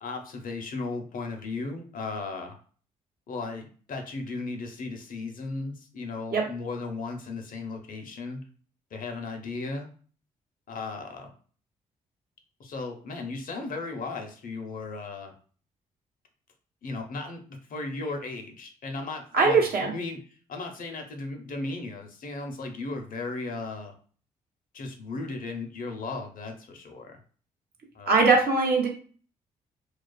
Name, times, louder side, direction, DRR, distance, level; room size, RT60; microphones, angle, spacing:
voice 1, 0.0-2.6 3.3-8.4 8.9-9.9 10.7-11.3 12.6-15.3 16.8-20.2 20.5-24.0 24.7-27.2 27.9-28.2, left 3 dB, 55° left, 5 dB, 0.6 m, -36 dB
voice 2, 19.3-19.9 28.1-28.9, right 4 dB, 65° right, 0 dB, 0.9 m, -21 dB
2.4 x 2.3 x 2.3 m, 0.42 s
hypercardioid pair, 45°, 17 cm